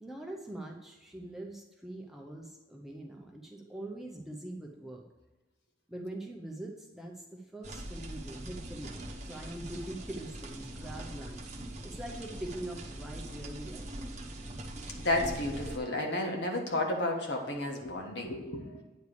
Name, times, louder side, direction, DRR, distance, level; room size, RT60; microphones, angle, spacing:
voice 1, 0.0-5.0 5.9-11.5 11.8-14.1, right 1 dB, ahead, 1 dB, 0.6 m, -43 dB
sound 1, 7.6-15.8, right 1 dB, 35° right, 1.0 m, -42 dB
voice 2, 15.0-18.8, left 1 dB, 60° left, 1 dB, 1.5 m, -32 dB
9.4 x 3.3 x 6.7 m, 1.1 s
head